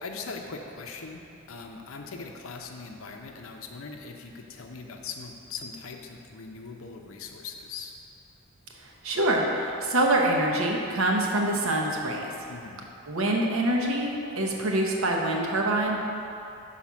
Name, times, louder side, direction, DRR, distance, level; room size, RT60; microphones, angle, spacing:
voice 1, 0.0-7.9 12.5-12.9, left 4 dB, 65° left, 3 dB, 0.6 m, -40 dB
voice 2, 8.8-12.3 13.1-16.0, right 1 dB, 65° right, 0 dB, 0.8 m, -25 dB
5.7 x 4.2 x 6.1 m, 2.8 s
head